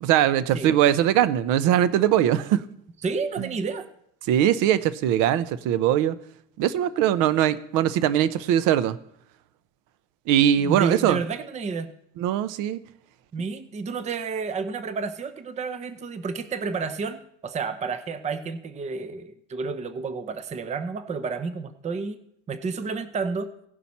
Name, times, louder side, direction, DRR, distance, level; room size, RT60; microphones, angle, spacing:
voice 1, 0.0-2.6 3.4-3.5 4.3-6.2 6.6-9.0 10.3-11.2 12.2-12.8, right 11 dB, 65° right, 16 dB, 0.7 m, -21 dB
voice 2, 3.0-3.9 10.6-11.9 13.3-22.2 22.5-23.5, right 4 dB, 20° right, 12 dB, 0.6 m, -30 dB
17.0 x 5.8 x 4.2 m, 0.72 s
supercardioid pair, 120°, 33 cm